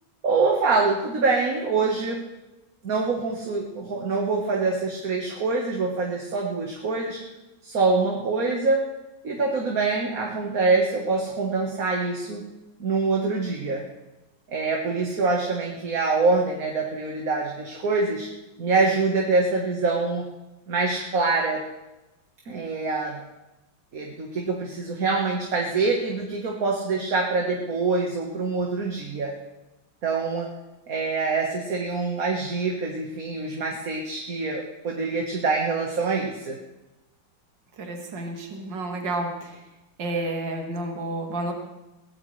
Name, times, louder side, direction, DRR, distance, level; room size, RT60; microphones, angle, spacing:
voice 1, 0.2-2.2 2.8-7.2 7.6-8.9 9.2-12.4 12.8-13.8 14.5-18.3 18.6-20.3 20.7-21.6 22.5-23.2 23.9-29.3 30.0-30.5 30.9-36.6, right 3 dB, 45° right, 0 dB, 1.8 m, -25 dB
voice 2, 37.8-39.6 40.0-41.5, right 2 dB, 65° right, 2 dB, 2.5 m, -30 dB
22.0 x 16.5 x 3.3 m, 1.0 s
omnidirectional pair, 2.2 m